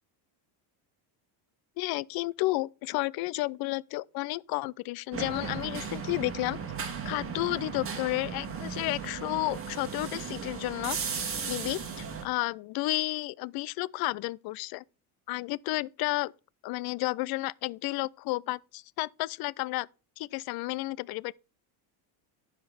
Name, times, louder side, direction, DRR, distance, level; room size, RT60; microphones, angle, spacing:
voice 1, 1.8-6.6 7.0-11.0 11.5-14.8 15.3-16.3 16.6-19.9 20.2-21.3, left 19 dB, 55° left, 0.5 m, -32 dB
sound 1, 5.1-12.2, right 6 dB, 30° right, 2.1 m, -36 dB
11.5 x 5.1 x 5.6 m
cardioid pair, 135°, 46 cm